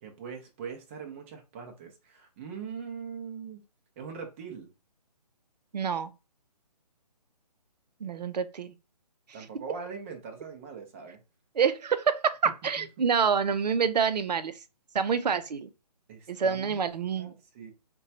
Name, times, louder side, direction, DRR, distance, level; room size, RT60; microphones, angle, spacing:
voice 1, 0.0-3.6 4.0-4.7 9.3-11.2 12.8-12.9 16.1-16.8 17.2-17.7, right 6 dB, 20° right, 0.5 m, -41 dB
voice 2, 5.7-6.1 8.0-8.7 11.6-14.5 14.9-15.7 16.3-17.3, right 6 dB, 75° right, 0.5 m, -27 dB
3.7 x 2.3 x 2.7 m
figure-of-eight pair, 150°, 21 cm